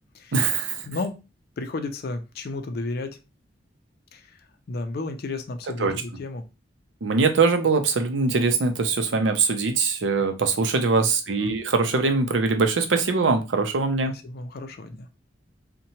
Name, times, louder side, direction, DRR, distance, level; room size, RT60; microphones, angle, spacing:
voice 1, 0.3-0.9 5.8-5.9 7.0-14.1, right 4 dB, 85° right, 0.5 m, -22 dB
voice 2, 0.9-1.2 1.6-3.2 4.1-4.4 4.7-6.4 11.0-11.5 14.1-15.1, left 2 dB, 55° left, 0.4 m, -33 dB
2.8 x 2.2 x 2.7 m
head